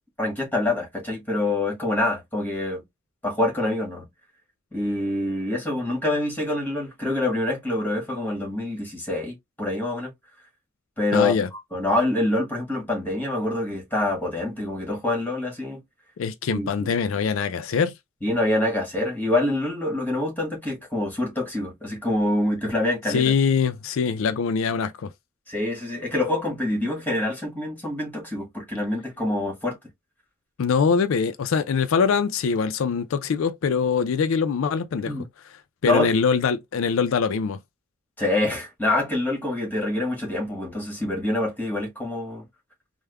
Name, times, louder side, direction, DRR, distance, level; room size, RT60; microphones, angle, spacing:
voice 1, 0.2-2.8 3.2-4.1 4.7-10.1 11.0-15.8 16.5-16.9 18.2-23.3 25.5-29.8 35.0-35.2 35.8-36.1 38.2-42.4, left 2 dB, 10° left, 1.4 m, -26 dB
voice 2, 11.1-11.5 16.2-17.9 23.1-25.1 30.6-35.1 35.8-37.6, left 5 dB, 80° left, 0.4 m, -23 dB
3.4 x 2.1 x 3.3 m
head